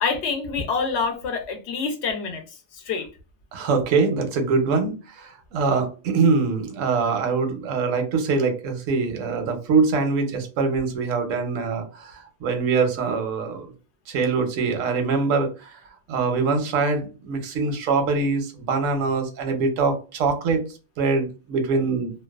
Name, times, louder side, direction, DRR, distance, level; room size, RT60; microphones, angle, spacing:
voice 1, 0.0-2.4 2.7-3.1, left 5 dB, 65° left, 6 dB, 0.8 m, -26 dB
voice 2, 3.5-13.7 14.1-15.8 16.1-20.7 21.0-22.1, right 4 dB, 85° right, 6 dB, 1.0 m, -23 dB
2.5 x 2.2 x 2.2 m, 0.33 s
omnidirectional pair, 1.3 m